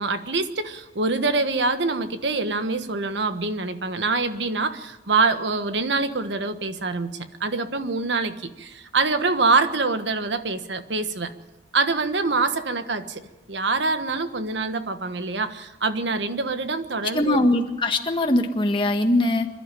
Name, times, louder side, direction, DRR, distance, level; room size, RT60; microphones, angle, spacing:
voice 1, 0.0-11.3 11.7-13.2 13.5-17.4, right 3 dB, 80° right, 9 dB, 1.4 m, -25 dB
voice 2, 17.1-19.5, left 1 dB, 25° left, 5 dB, 1.6 m, -21 dB
26.5 x 11.5 x 9.1 m, 1.1 s
head